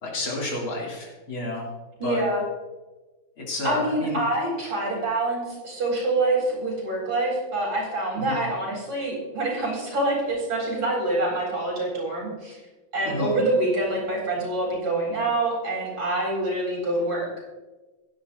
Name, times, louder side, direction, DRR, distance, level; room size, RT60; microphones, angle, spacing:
voice 1, 0.0-1.7 2.0-2.2 3.4-4.2 8.2-8.4 13.1-13.3, left 2 dB, 85° left, -3 dB, 3.7 m, -30 dB
voice 2, 2.0-2.4 3.6-12.6 12.9-17.3, right 2 dB, 75° right, -3 dB, 4.9 m, -26 dB
16.0 x 10.5 x 2.7 m, 1.2 s
omnidirectional pair, 2.2 m